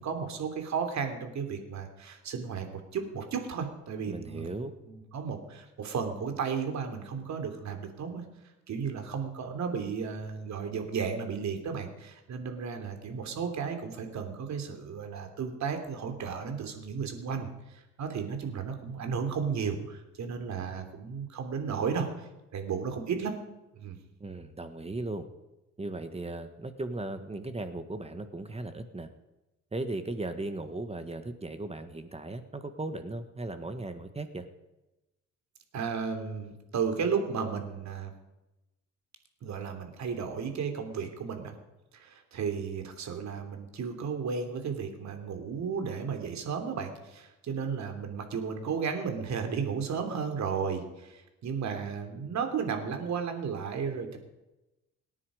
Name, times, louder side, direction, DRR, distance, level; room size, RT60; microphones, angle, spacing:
voice 1, 0.0-4.5 4.9-8.2 8.7-17.5 18.0-22.2 22.5-23.3 23.7-24.0 35.7-38.1 39.4-41.5 41.9-54.2, right 6 dB, 65° right, 5 dB, 3.2 m, -34 dB
voice 2, 4.1-4.7 24.2-25.3 25.8-29.1 29.7-34.5, right 2 dB, 20° right, 9 dB, 1.6 m, -37 dB
26.0 x 9.9 x 5.1 m, 0.98 s
cardioid pair, 90°, 30 cm